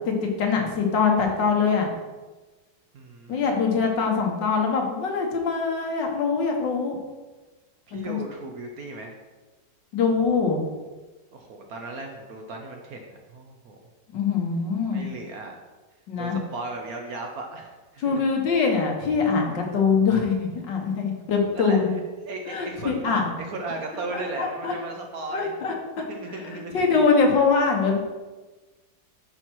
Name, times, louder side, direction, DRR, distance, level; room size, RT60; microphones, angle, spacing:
voice 1, 0.1-1.9 3.3-7.0 7.9-8.2 9.9-10.6 14.1-15.1 16.1-16.4 18.0-21.9 22.5-23.3 24.1-24.7 25.3-25.7 26.7-28.1, left 5 dB, 80° left, 2 dB, 1.9 m, -23 dB
voice 2, 2.9-3.6 7.9-9.2 11.3-13.8 14.9-15.6 16.2-18.2 21.5-21.8 22.2-25.5 26.1-27.0, right 3 dB, 60° right, 2 dB, 1.2 m, -36 dB
10.5 x 4.5 x 4.6 m, 1.2 s
omnidirectional pair, 1.9 m